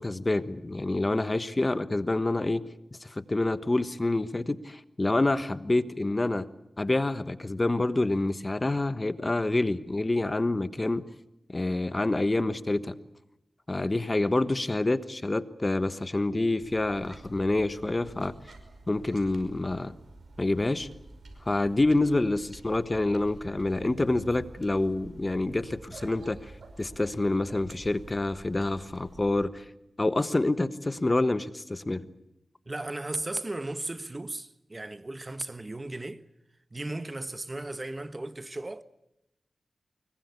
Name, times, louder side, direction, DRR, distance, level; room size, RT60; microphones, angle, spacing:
voice 1, 0.0-2.6 3.0-6.5 6.8-11.0 11.5-13.0 13.7-18.3 18.9-19.9 20.4-20.9 21.5-26.5 26.8-29.6 30.0-32.0, left 2 dB, 30° left, 1.2 m, -27 dB
sound 1, 16.6-29.4, right 2 dB, 75° right, 5.4 m, -49 dB
voice 2, 32.7-36.2 36.7-38.8, right 2 dB, 30° right, 1.2 m, -36 dB
24.5 x 22.0 x 8.3 m
cardioid pair, 60°, 0 cm